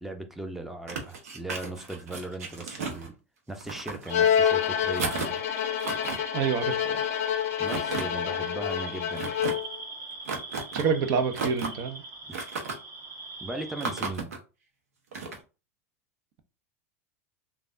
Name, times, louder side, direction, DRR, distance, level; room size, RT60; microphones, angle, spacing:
voice 1, 0.0-3.1 3.5-5.4 7.6-9.3 12.3-12.4 13.4-14.4, right 2 dB, 5° right, 0.6 m, -38 dB
sound 1, 0.9-3.1 3.5-4.3 4.9-5.4 5.8-6.2 7.6-8.0 9.2-9.5 10.3-10.9 11.3-11.8 12.3-12.7 13.8-14.4 15.1-15.4, right 4 dB, 85° right, 0.8 m, -33 dB
Bowed string instrument, 4.1-9.8, left 9 dB, 70° left, 0.4 m, -27 dB
sound 2, 4.1-14.1, right 3 dB, 35° right, 1.7 m, -43 dB
voice 2, 6.3-7.0 10.7-12.0, right 6 dB, 55° right, 0.6 m, -27 dB
3.3 x 2.3 x 2.5 m
hypercardioid pair, 100°, 8 cm